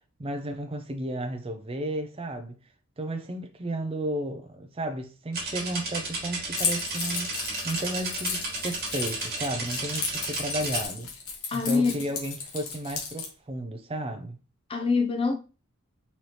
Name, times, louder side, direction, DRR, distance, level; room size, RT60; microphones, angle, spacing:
voice 1, 0.2-2.6 3.0-7.3 7.6-11.1 11.5-14.4, right 1 dB, 25° right, 0.5 m, -33 dB
sound 1, 5.3-10.9, right 3 dB, 45° right, 1.4 m, -33 dB
Keys jangling, 6.5-13.3, left 5 dB, 75° left, 1.2 m, -34 dB
voice 2, 11.5-12.0 14.7-15.4, left 4 dB, 25° left, 0.5 m, -24 dB
4.1 x 3.3 x 2.9 m
head